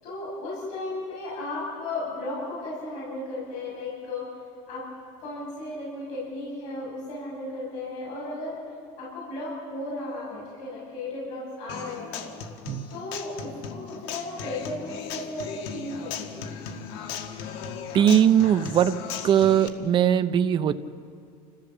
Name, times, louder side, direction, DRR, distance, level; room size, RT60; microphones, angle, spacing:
voice 1, 0.0-4.3 4.7-4.9 5.2-8.6 9.0-12.3 12.9-16.6, left 2 dB, 55° left, -6 dB, 7.5 m, -35 dB
Human voice / Acoustic guitar, 11.7-19.7, left 7 dB, 80° left, 1.8 m, -37 dB
voice 2, 17.9-20.7, right 9 dB, 35° right, 11 dB, 0.8 m, -20 dB
28.5 x 15.5 x 7.4 m, 2.3 s
cardioid pair, 155°, 14 cm